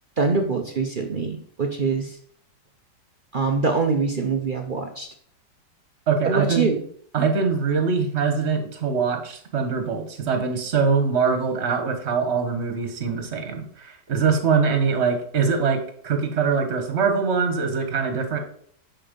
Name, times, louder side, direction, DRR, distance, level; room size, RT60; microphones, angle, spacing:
voice 1, 0.2-2.1 3.3-5.1 6.2-6.8, right 4 dB, 60° right, 4 dB, 0.5 m, -24 dB
voice 2, 6.1-6.7 7.1-18.4, right 5 dB, 40° right, 5 dB, 1.4 m, -23 dB
10.0 x 4.4 x 5.2 m, 0.62 s
omnidirectional pair, 1.9 m